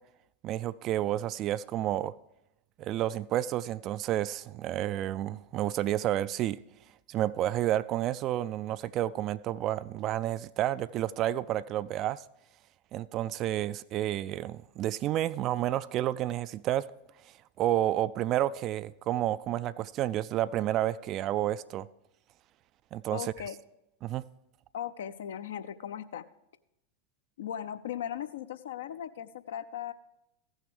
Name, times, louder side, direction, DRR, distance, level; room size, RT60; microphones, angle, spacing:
voice 1, 0.4-2.1 2.8-6.6 7.1-12.2 12.9-16.9 17.6-21.9 22.9-23.3 24.0-24.2, right 13 dB, 35° right, 16 dB, 0.3 m, -30 dB
voice 2, 23.1-23.6 24.7-26.2 27.4-29.9, left 10 dB, 60° left, 12 dB, 0.5 m, -38 dB
14.5 x 6.4 x 4.9 m, 0.87 s
figure-of-eight pair, 90°, 0 cm